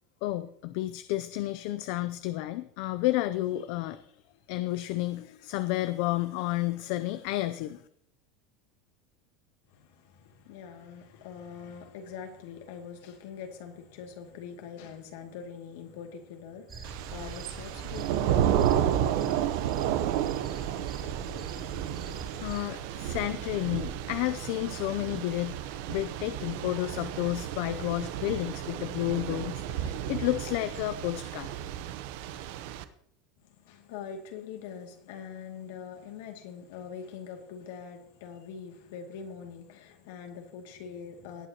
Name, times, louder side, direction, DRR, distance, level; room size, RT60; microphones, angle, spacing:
voice 1, 0.2-4.1 4.5-7.8 22.1-31.5, left 16 dB, 65° left, 0.5 m, -31 dB
voice 2, 9.7-18.9 19.2-19.5 33.4-41.5, left 7 dB, 80° left, 2.4 m, -43 dB
sound 1, 16.7-22.6, right 5 dB, 30° right, 3.3 m, -42 dB
Thunder / Rain, 16.8-32.8, right 10 dB, 70° right, 0.9 m, -32 dB
18.5 x 9.2 x 3.0 m
supercardioid pair, 150°, 0 cm